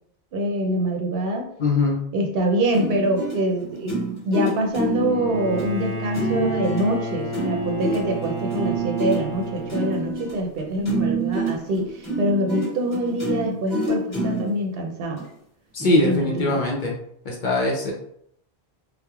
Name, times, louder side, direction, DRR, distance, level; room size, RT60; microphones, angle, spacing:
voice 1, 0.3-1.5 2.1-15.3 16.0-16.6, right 1 dB, 70° right, 1 dB, 0.7 m, -25 dB
voice 2, 1.6-2.0 15.7-16.9 17.3-17.9, left 2 dB, 60° left, -1 dB, 0.6 m, -21 dB
sound 1, 2.7-14.5 15.2-15.3 15.8-16.0, right 2 dB, 15° left, 1.1 m, -27 dB
Bowed string instrument, 5.1-10.3, right 1 dB, 20° right, 0.6 m, -31 dB
2.9 x 2.1 x 2.3 m, 0.71 s
omnidirectional pair, 1.1 m